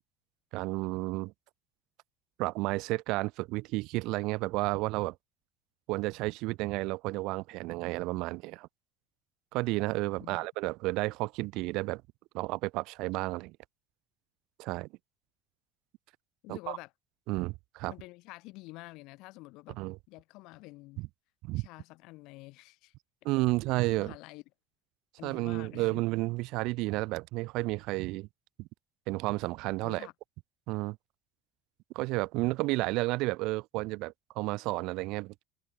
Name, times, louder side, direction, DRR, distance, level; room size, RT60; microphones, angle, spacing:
voice 1, 0.5-1.3 2.4-5.1 5.9-8.7 9.5-12.0 12.3-13.6 14.6-14.9 16.5-16.8 17.3-17.9 19.8-20.0 21.0-21.1 21.4-21.7 23.2-24.1 25.2-28.3 28.6-28.7 29.1-30.1 30.7-31.0 31.9-35.4, right 22 dB, 55° right, 0.7 m, -32 dB
voice 2, 16.4-16.9 17.9-19.8 20.1-21.1 21.5-22.9 23.7-24.4 25.2-26.0 29.8-30.1, left 22 dB, 55° left, 1.4 m, -48 dB
figure-of-eight pair, 60°, 0 cm